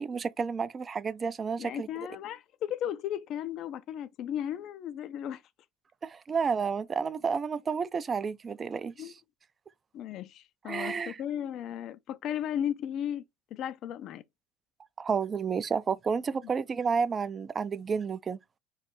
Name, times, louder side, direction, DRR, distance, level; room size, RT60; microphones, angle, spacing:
voice 1, 0.0-1.9 6.0-9.1 10.7-11.2 15.0-18.4, right 5 dB, 30° right, 0.4 m, -31 dB
voice 2, 1.6-5.4 9.0-9.1 9.9-13.2 13.5-14.2 16.4-16.5, left 10 dB, 50° left, 0.4 m, -35 dB
3.2 x 2.4 x 4.3 m
hypercardioid pair, 85°, 0 cm